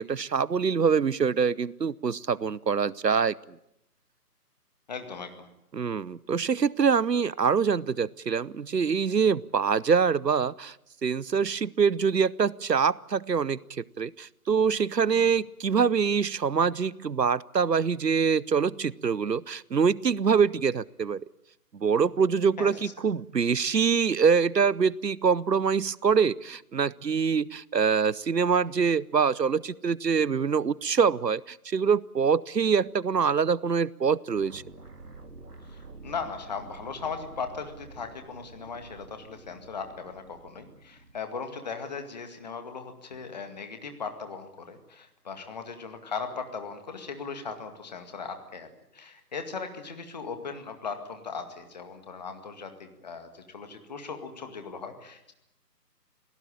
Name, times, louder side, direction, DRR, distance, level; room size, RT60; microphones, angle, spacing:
voice 1, 0.0-3.4 5.7-10.8 11.0-21.2 21.7-34.6, right 6 dB, 80° right, 23 dB, 0.8 m, -25 dB
voice 2, 4.9-5.5 15.1-15.3 22.6-22.7 35.7-55.3, left 5 dB, 25° left, 7 dB, 2.1 m, -38 dB
sound 1, 34.3-41.2, right 3 dB, 65° right, 3.5 m, -48 dB
27.5 x 17.5 x 8.8 m, 0.84 s
figure-of-eight pair, 155°, 49 cm